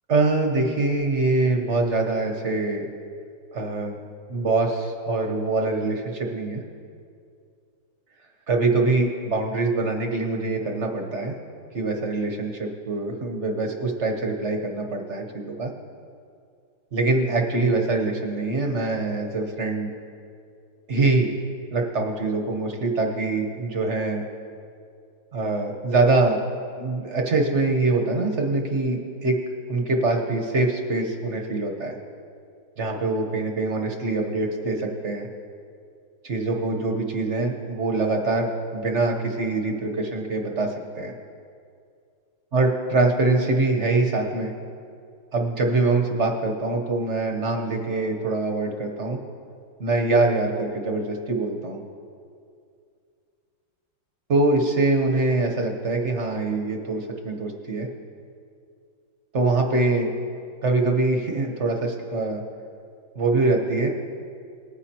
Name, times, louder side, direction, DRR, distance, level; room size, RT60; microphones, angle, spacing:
voice 1, 0.1-2.9 3.5-4.0 4.3-6.6 8.5-11.4 11.7-15.7 16.9-19.9 20.9-21.3 21.7-24.2 25.3-26.4 26.8-29.4 29.7-31.9 32.8-35.3 36.2-41.1 42.5-44.5 45.3-49.2 49.8-51.8 54.3-57.9 59.3-60.1 60.6-62.4 63.1-63.9, right 3 dB, 45° right, 2 dB, 1.1 m, -24 dB
19.5 x 9.8 x 2.9 m, 2.3 s
omnidirectional pair, 2.1 m